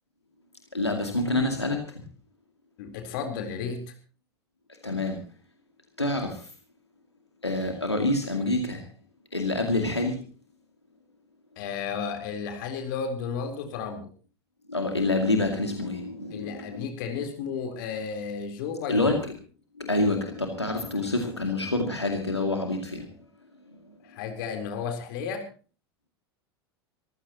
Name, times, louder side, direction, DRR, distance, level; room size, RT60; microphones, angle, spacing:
voice 1, 0.7-2.0 4.8-5.2 6.0-6.5 7.4-8.9 9.3-10.2 14.7-16.9 18.9-19.2 19.8-23.1 23.7-23.8, left 2 dB, 85° left, 3 dB, 2.3 m, -27 dB
voice 2, 2.8-3.8 11.6-14.1 16.3-19.2 24.0-25.4, left 6 dB, 55° left, 5 dB, 3.8 m, -33 dB
25.0 x 15.0 x 3.0 m, 0.39 s
figure-of-eight pair, 80°, 14 cm